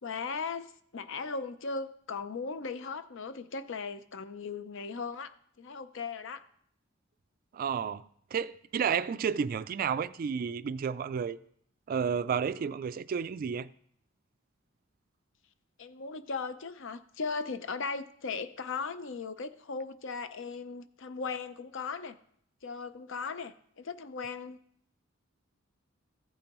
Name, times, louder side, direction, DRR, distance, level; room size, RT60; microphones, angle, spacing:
voice 1, 0.0-6.4 15.8-22.2 22.6-24.6, left 4 dB, 65° left, 0.6 m, -38 dB
voice 2, 7.5-11.4 11.9-13.7, right 7 dB, 45° right, 0.3 m, -31 dB
15.0 x 8.7 x 3.0 m
head